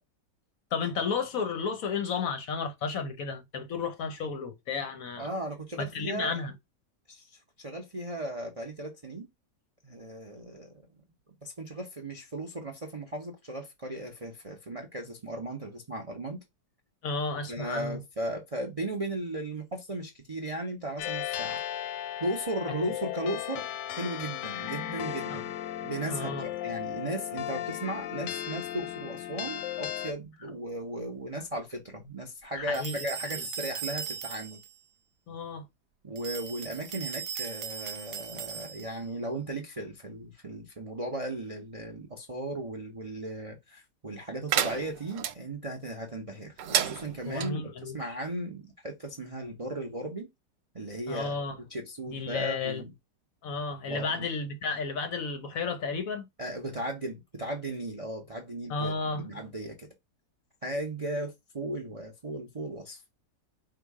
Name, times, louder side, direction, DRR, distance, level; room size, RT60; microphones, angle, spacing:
voice 1, 0.7-5.3 5.8-6.5 17.0-18.0 25.3-25.4 26.1-26.5 32.6-33.1 35.3-35.7 47.3-48.0 51.1-51.5 52.1-52.8 53.4-56.3 58.7-59.3, left 4 dB, 65° left, 0.9 m, -32 dB
voice 2, 5.2-6.4 7.1-9.3 9.8-10.7 11.4-16.4 17.5-21.6 22.2-23.7 23.9-25.5 25.8-26.3 26.6-34.6 36.0-50.3 50.7-51.4 51.7-52.9 53.9-54.3 56.4-59.9 60.6-63.0, right 1 dB, 40° right, 0.4 m, -36 dB
sound 1, 21.0-30.1, left 11 dB, 90° left, 1.2 m, -36 dB
sound 2, 32.7-34.7 36.2-39.1, right 7 dB, 65° right, 0.9 m, -38 dB
sound 3, 44.5-45.3 46.6-47.5, right 10 dB, 90° right, 1.3 m, -30 dB
4.8 x 2.4 x 3.5 m
omnidirectional pair, 1.9 m